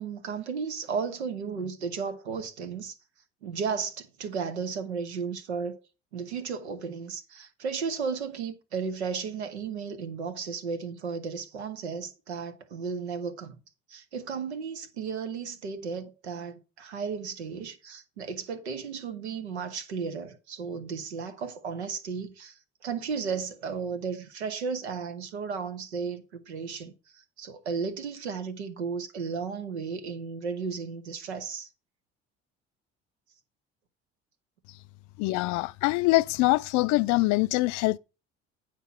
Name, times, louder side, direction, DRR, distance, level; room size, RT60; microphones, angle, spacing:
voice 1, 0.0-2.9 3.4-5.8 6.1-13.6 13.9-31.7, right 5 dB, 85° right, 1.1 m, -34 dB
voice 2, 35.2-38.0, left 21 dB, 60° left, 0.5 m, -24 dB
9.1 x 4.5 x 5.6 m
hypercardioid pair, 60°, 32 cm